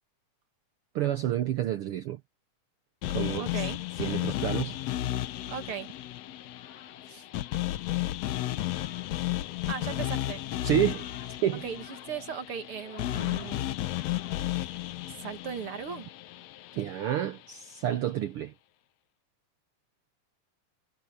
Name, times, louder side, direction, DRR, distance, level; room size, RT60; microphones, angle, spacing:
voice 1, 0.9-2.2 3.1-3.6 4.0-4.8 10.6-11.1 11.4-11.6 16.8-18.5, right 11 dB, 75° right, 1.3 m, -29 dB
sound 1, 3.0-17.2, left 15 dB, 70° left, 1.8 m, -33 dB
voice 2, 3.4-3.8 5.5-5.9 7.1-7.2 9.7-10.4 11.6-13.6 15.1-16.1, right 7 dB, 50° right, 2.0 m, -37 dB
sound 2, 6.2-14.9, left 8 dB, 50° left, 2.3 m, -52 dB
omnidirectional pair, 3.6 m